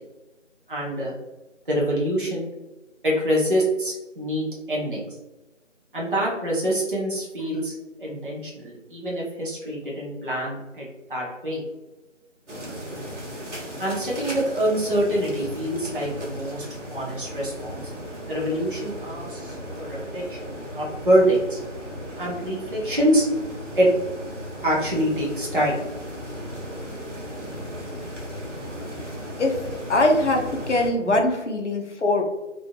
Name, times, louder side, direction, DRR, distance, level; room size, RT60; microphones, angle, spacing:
voice 1, 0.7-1.1 1.7-2.5 3.0-5.1 5.9-11.6 13.8-16.6 16.9-17.8 18.3-20.4 20.7-21.6 22.2-23.3 23.8-23.9 24.6-25.8 31.0-31.1, equal, 45° right, -5 dB, 0.8 m, -25 dB
sound 1, 12.5-30.9, equal, 65° right, 1.1 m, -36 dB
voice 2, 29.9-32.2, left 2 dB, 65° left, 2 dB, 0.7 m, -22 dB
3.6 x 2.5 x 2.3 m, 1.1 s
figure-of-eight pair, 170°, 38 cm